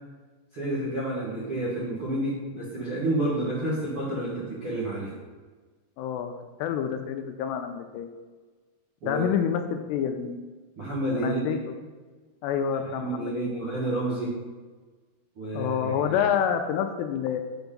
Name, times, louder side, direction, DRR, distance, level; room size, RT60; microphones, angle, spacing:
voice 1, 0.5-5.1 9.0-9.2 10.8-11.6 12.7-14.4 15.3-16.2, right 1 dB, 60° right, -8 dB, 1.4 m, -30 dB
voice 2, 6.0-6.3 6.6-8.1 9.0-10.4 11.2-11.6 12.4-13.7 15.5-17.4, left 8 dB, 80° left, 7 dB, 2.6 m, -28 dB
8.0 x 4.6 x 5.3 m, 1.4 s
omnidirectional pair, 5.0 m